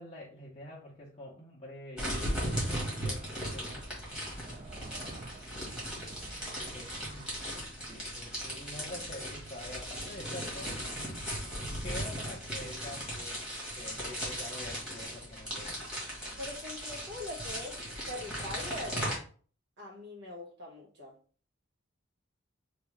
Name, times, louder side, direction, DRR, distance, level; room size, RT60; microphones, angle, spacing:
voice 1, 0.0-3.2 3.5-3.9 6.6-7.3 7.9-10.8 11.8-13.5 13.8-15.7, left 1 dB, 30° left, 0.7 m, -46 dB
sound 1, 2.0-19.1, equal, 5° right, 1.5 m, -37 dB
sound 2, 2.2-10.6, right 2 dB, 35° right, 0.4 m, -50 dB
voice 2, 16.4-17.8 18.1-19.1 19.8-21.2, left 1 dB, 60° right, 1.3 m, -42 dB
3.3 x 2.7 x 3.2 m
head